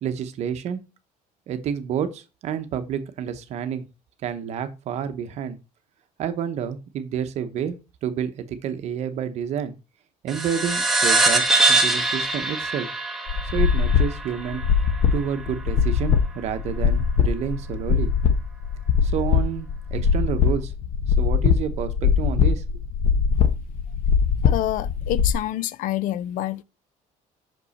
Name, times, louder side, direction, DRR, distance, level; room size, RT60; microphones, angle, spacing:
voice 1, 0.0-0.8 1.5-3.8 4.2-5.6 6.2-7.8 8.0-9.7 10.2-12.9 13.5-14.6 15.1-18.1 19.0-20.7 21.2-22.6, right 8 dB, 50° right, 0.9 m, -29 dB
sound 1, 10.3-15.2, right 2 dB, ahead, 1.0 m, -23 dB
sound 2, 13.3-25.3, left 7 dB, 45° left, 0.9 m, -21 dB
voice 2, 24.4-26.6, left 13 dB, 65° left, 0.4 m, -27 dB
6.1 x 5.3 x 4.1 m
cardioid pair, 180°, 15 cm